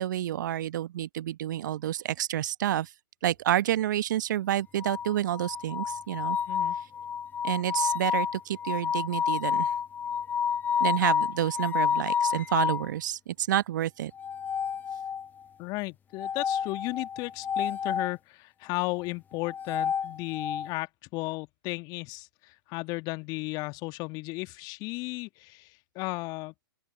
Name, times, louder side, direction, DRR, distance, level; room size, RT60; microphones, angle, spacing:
voice 1, 0.0-2.9 3.2-6.4 7.4-9.7 10.8-14.1, right 12 dB, 50° right, 1.0 m, -29 dB
sound 1, 4.8-12.9 14.1-15.4 16.2-18.1 19.3-20.7, left 7 dB, 15° left, 0.9 m, -30 dB
voice 2, 15.6-25.7 25.9-26.5, left 24 dB, 30° left, 1.7 m, -35 dB
open air
figure-of-eight pair, 115°, 12 cm